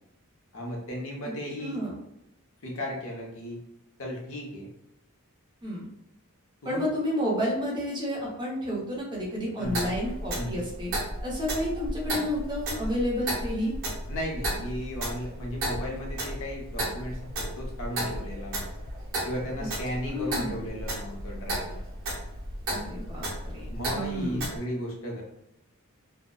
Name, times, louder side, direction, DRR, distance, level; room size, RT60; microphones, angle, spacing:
voice 1, 0.5-1.8 2.6-3.6 4.0-4.7 6.6-6.8 9.6-9.9 10.3-10.7 14.1-18.7 19.2-21.8 23.7-25.2, equal, 65° left, -1 dB, 0.7 m, -35 dB
voice 2, 1.6-1.9 5.6-5.9 6.6-10.9 11.2-13.7 20.0-20.6 22.7-24.5, equal, 20° right, -4 dB, 0.7 m, -31 dB
Clock, 9.6-24.6, right 1 dB, 60° right, 1.0 m, -34 dB
2.6 x 2.1 x 2.2 m, 0.85 s
head